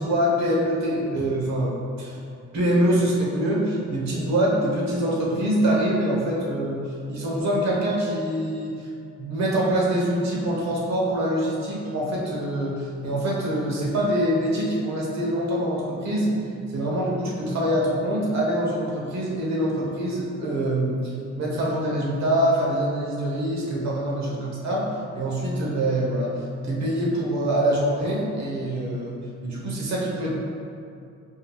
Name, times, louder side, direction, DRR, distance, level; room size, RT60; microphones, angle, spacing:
voice 1, 0.0-2.2 2.5-8.9 9.2-16.4 16.7-24.9 25.1-29.1 29.4-30.4, right 1 dB, 65° right, -4 dB, 1.0 m, -24 dB
5.1 x 2.8 x 2.3 m, 2.5 s
cardioid pair, 90°, 30 cm